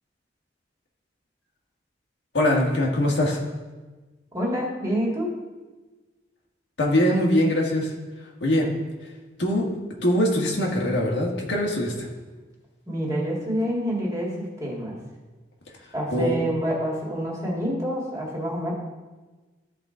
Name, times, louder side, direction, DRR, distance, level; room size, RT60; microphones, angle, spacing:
voice 1, 2.3-3.4 6.8-7.9 8.4-8.7 9.4-9.6 10.0-12.1 16.1-16.3, left 1 dB, 75° left, -2 dB, 1.6 m, -22 dB
voice 2, 4.3-5.3 12.9-15.0 15.9-18.7, equal, 20° right, -3 dB, 1.9 m, -27 dB
13.5 x 5.0 x 3.8 m, 1.3 s
head